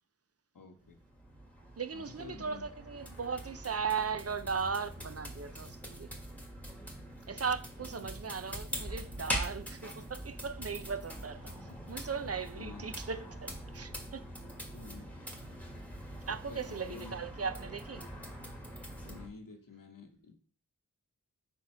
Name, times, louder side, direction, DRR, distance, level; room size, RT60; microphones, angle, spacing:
voice 1, 0.5-1.0 1.9-2.7 7.9-8.1 11.7-11.8 12.6-12.9 14.7-15.1 16.2-17.1 19.0-20.3, left 5 dB, 85° left, 1.0 m, -50 dB
sound 1, 0.8-19.3, equal, 5° left, 1.5 m, -43 dB
voice 2, 1.8-6.1 7.3-14.3 16.3-18.1, right 5 dB, 50° right, 0.5 m, -37 dB
5.2 x 4.5 x 4.3 m
wide cardioid pair, 55°, 32 cm